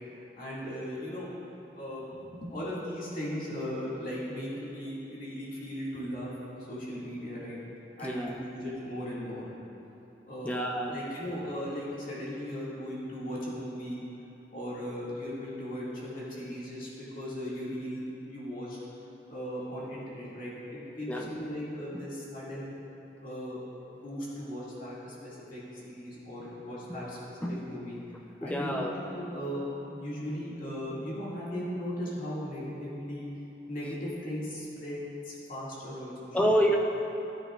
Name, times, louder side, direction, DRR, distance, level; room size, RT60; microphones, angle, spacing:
voice 1, 0.3-1.3 1.7-7.6 8.0-9.4 10.3-10.5 10.9-14.0 14.5-18.8 19.3-22.7 23.2-23.6 23.9-28.0 28.4-28.8 29.1-33.3 33.7-36.6, equal, 45° left, -8 dB, 2.1 m, -37 dB
voice 2, 8.0-8.4 10.4-11.0 21.1-21.3 27.4-27.5 28.4-28.9 36.3-36.8, equal, 10° left, 0 dB, 0.6 m, -27 dB
12.5 x 9.8 x 2.4 m, 3.0 s
head